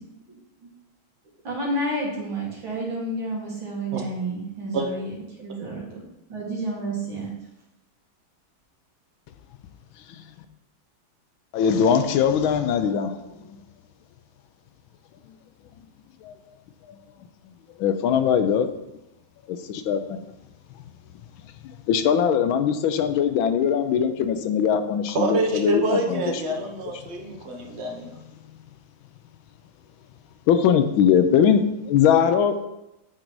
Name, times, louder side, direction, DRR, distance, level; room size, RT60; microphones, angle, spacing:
voice 1, 1.4-6.0 6.3-7.3, right 1 dB, 75° right, -4 dB, 2.8 m, -30 dB
voice 2, 11.5-13.2 16.2-16.3 17.8-18.7 19.5-20.2 21.6-26.2 30.5-32.7, left 8 dB, 85° left, 9 dB, 1.4 m, -21 dB
voice 3, 25.1-28.2, right 2 dB, 45° right, 1 dB, 1.0 m, -26 dB
8.7 x 3.9 x 4.7 m, 0.91 s
omnidirectional pair, 2.2 m